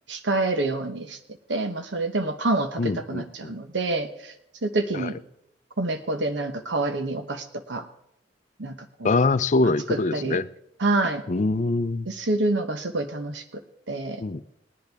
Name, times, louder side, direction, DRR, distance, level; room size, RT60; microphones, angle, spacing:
voice 1, 0.1-1.2 1.5-4.3 4.6-5.2 5.8-7.8 8.6-9.1 9.9-10.4 10.8-11.2 12.1-13.6 13.9-14.2, right 2 dB, 80° right, 8 dB, 1.0 m, -27 dB
voice 2, 2.8-3.5 4.9-5.1 9.0-10.5 11.3-12.1 14.2-14.4, left 3 dB, 45° left, 13 dB, 0.5 m, -24 dB
19.5 x 10.5 x 3.5 m, 0.82 s
head